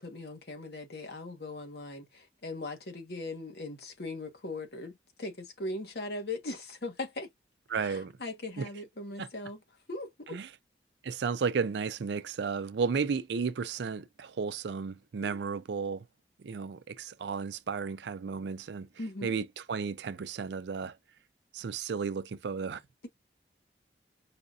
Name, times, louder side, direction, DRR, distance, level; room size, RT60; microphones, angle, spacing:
voice 1, 0.0-7.3 7.8-9.6 9.9-10.4 15.2-15.4 19.0-19.3, left 2 dB, 70° left, 1.2 m, -39 dB
voice 2, 7.7-8.1 8.6-8.7 9.2-9.3 10.3-10.5 11.0-16.1 16.4-18.9 19.2-21.0 21.5-22.8, right 5 dB, 80° right, 0.4 m, -33 dB
4.9 x 2.4 x 2.3 m
head